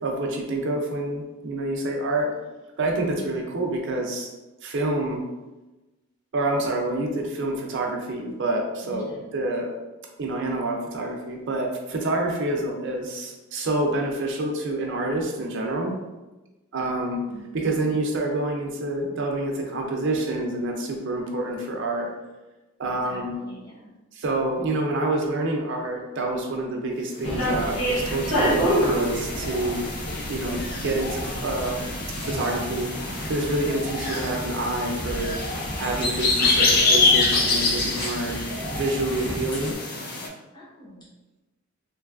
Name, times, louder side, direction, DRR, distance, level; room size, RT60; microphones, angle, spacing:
voice 1, 0.0-2.3 2.8-4.3 4.6-5.2 6.3-9.1 9.3-9.7 10.2-16.0 16.7-17.2 17.5-22.1 22.8-23.4 24.1-29.9 30.3-32.0 32.2-32.9 33.3-35.4 35.8-38.4 38.7-39.7, right 2 dB, 60° right, 1 dB, 0.5 m, -27 dB
voice 2, 8.8-9.3 17.3-17.9 23.0-23.9 40.5-41.1, left 2 dB, 20° left, -5 dB, 0.8 m, -43 dB
sound 1, 27.2-39.7, equal, 85° left, 1.3 m, -30 dB
sound 2, 27.3-40.3, left 3 dB, 45° left, 0.4 m, -27 dB
3.2 x 2.6 x 2.4 m, 1.1 s
head